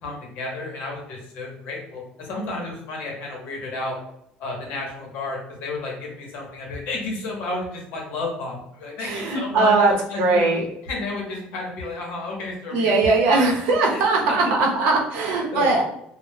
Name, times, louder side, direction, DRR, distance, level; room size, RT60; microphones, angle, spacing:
voice 1, 0.0-4.0 4.4-10.5 10.8-14.5 15.5-15.7, left 2 dB, 60° left, -1 dB, 0.7 m, -32 dB
voice 2, 9.0-10.6 12.7-15.8, right 3 dB, 85° right, -1 dB, 0.6 m, -20 dB
2.1 x 2.0 x 3.1 m, 0.77 s
cardioid pair, 180°, 3 cm